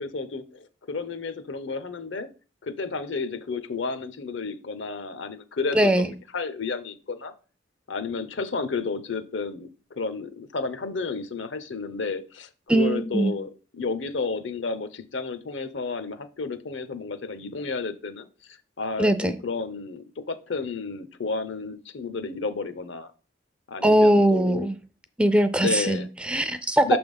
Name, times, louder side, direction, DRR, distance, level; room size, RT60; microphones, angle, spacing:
voice 1, 0.0-2.3 2.6-7.3 7.9-23.1 23.7-24.7 25.6-26.1 26.8-27.0, left 4 dB, 75° left, 0.7 m, -32 dB
voice 2, 5.7-6.1 12.7-13.3 19.0-19.4 23.8-24.7 25.2-27.0, right 1 dB, 5° right, 0.3 m, -21 dB
6.2 x 3.4 x 5.3 m
head